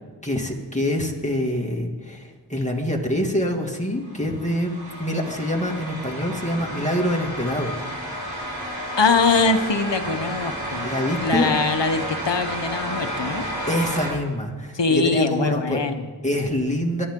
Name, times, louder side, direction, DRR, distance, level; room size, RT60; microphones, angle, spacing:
voice 1, 0.2-4.7 5.0-7.8 10.8-11.5 13.7-15.8 16.2-17.1, left 1 dB, 15° left, 0 dB, 2.3 m, -25 dB
sound 1, 4.0-14.1, equal, 55° right, 5.9 m, -31 dB
voice 2, 9.0-10.9 11.2-13.5 14.7-16.1, left 4 dB, 75° left, 8 dB, 1.1 m, -22 dB
23.0 x 12.0 x 3.8 m, 1.4 s
wide cardioid pair, 45°, 43 cm